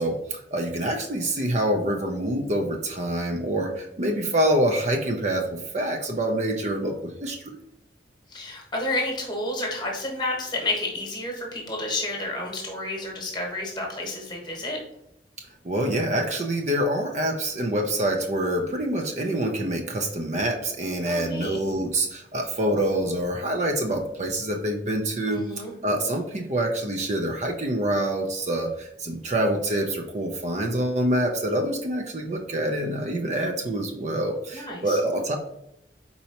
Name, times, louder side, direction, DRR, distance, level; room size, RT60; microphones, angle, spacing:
voice 1, 0.0-7.5 15.4-35.4, right 1 dB, 40° right, 3 dB, 0.5 m, -26 dB
voice 2, 8.3-14.8 21.0-21.6 25.3-25.7 34.5-35.0, left 2 dB, 25° left, 0 dB, 1.1 m, -30 dB
4.5 x 4.1 x 2.9 m, 0.81 s
head